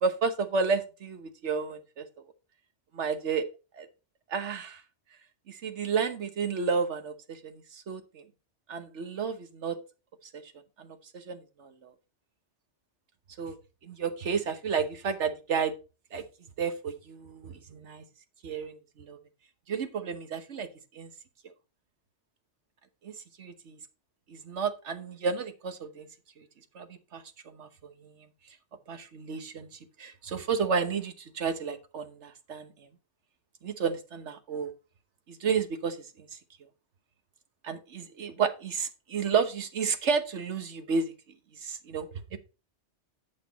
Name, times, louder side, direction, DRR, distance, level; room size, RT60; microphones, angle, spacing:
voice 1, 0.0-2.0 2.9-3.4 3.7-3.9 4.3-4.8 5.5-8.2 8.7-9.8 10.3-10.5 10.8-11.9 13.4-13.6 13.8-15.7 16.1-16.2 16.6-18.0 18.4-19.2 19.7-20.7 20.9-21.1 23.0-23.1 23.4-23.8 24.3-26.1 26.4-26.5 26.7-28.3 28.9-32.9 33.6-34.7 35.3-36.4 37.6-41.1 41.5-42.4, right 5 dB, 80° right, 1.4 m, -32 dB
8.5 x 6.6 x 4.0 m
omnidirectional pair, 1.2 m